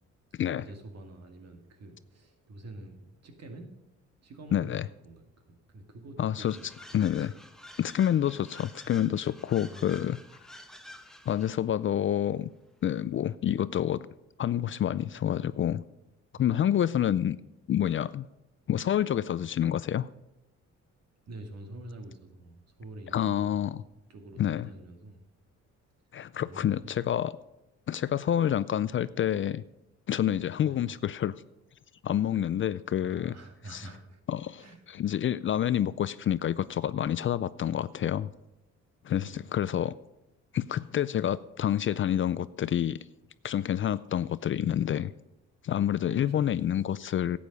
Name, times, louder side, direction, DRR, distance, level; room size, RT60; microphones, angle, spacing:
voice 1, 0.5-3.7 4.2-7.0 9.7-10.2 16.3-16.5 21.3-25.2 26.4-27.0 30.6-30.9 33.0-34.2 34.6-34.8 39.2-39.5 46.0-46.4, right 1 dB, 55° right, 4 dB, 2.1 m, -47 dB
voice 2, 4.5-4.8 6.2-6.6 6.9-7.3 7.8-10.2 11.3-12.5 12.8-14.1 14.4-15.8 16.4-17.4 17.7-18.3 18.7-20.1 23.1-23.8 24.4-24.7 26.1-27.4 27.9-29.6 30.1-31.3 32.0-33.3 33.7-33.8 34.3-38.3 39.0-39.9 40.5-43.0 43.4-45.1 45.6-47.4, left 10 dB, 45° left, 17 dB, 0.4 m, -28 dB
sound 1, 6.5-11.6, left 1 dB, ahead, 1.0 m, -50 dB
12.0 x 8.6 x 5.4 m, 0.93 s
cardioid pair, 90°, 30 cm